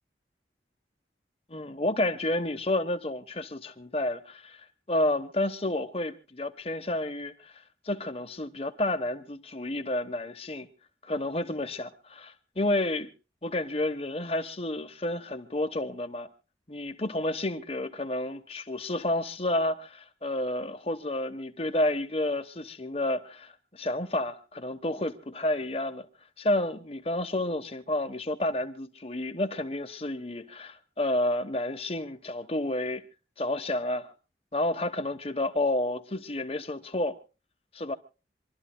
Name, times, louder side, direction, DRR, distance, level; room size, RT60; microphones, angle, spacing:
voice 1, 1.5-10.7 11.0-13.1 13.4-16.3 16.7-26.1 26.4-33.0 33.4-34.1 34.5-37.2 37.7-37.9, left 1 dB, 35° left, 1.0 m, -30 dB
26.5 x 12.5 x 2.2 m
head